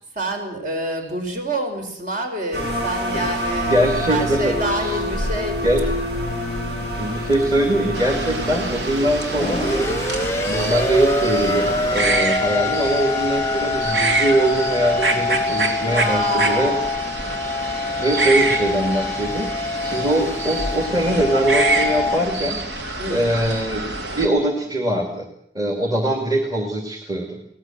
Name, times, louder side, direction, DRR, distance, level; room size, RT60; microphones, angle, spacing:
voice 1, 0.1-5.6 15.8-16.9 17.9-18.0 23.0-23.2, right 2 dB, 50° right, 4 dB, 5.2 m, -27 dB
sound 1, 2.5-12.1, equal, 65° right, 7.3 m, -27 dB
voice 2, 3.7-5.0 5.6-5.8 6.8-9.9 10.5-16.7 17.8-22.6 23.1-23.9 24.1-25.3 25.5-27.4, right 1 dB, 20° right, 3 dB, 2.5 m, -22 dB
sound 2, 7.3-7.4 9.3-22.2, left 3 dB, 15° left, 0.9 m, -25 dB
sound 3, 7.9-24.3, right 2 dB, 80° right, 3.4 m, -26 dB
24.0 x 18.5 x 7.4 m, 0.70 s
head